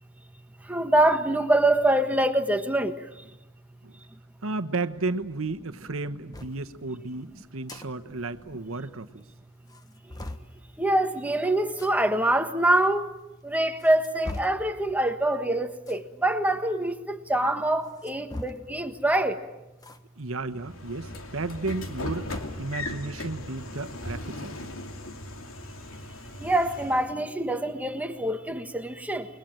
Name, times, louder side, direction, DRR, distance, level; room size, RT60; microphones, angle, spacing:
voice 1, 0.7-2.9 10.8-13.1 13.4-19.4 26.4-29.3, right 1 dB, 5° right, 1.5 m, -25 dB
voice 2, 4.4-9.2 20.2-22.3 22.6-24.7, right 3 dB, 80° right, 1.2 m, -33 dB
sound 1, 6.3-6.6 7.5-7.9 8.2-8.3 8.5-8.6 9.2-9.3 9.7-10.5 11.7-11.9 12.8-12.9 13.6-14.7 15.8-16.1 17.8-18.8 19.8-20.0 20.4-20.5 21.7-22.7, left 1 dB, 20° left, 1.4 m, -40 dB
Train / Sliding door, 20.6-27.1, left 2 dB, 80° left, 2.8 m, -38 dB
29.0 x 22.0 x 9.0 m
head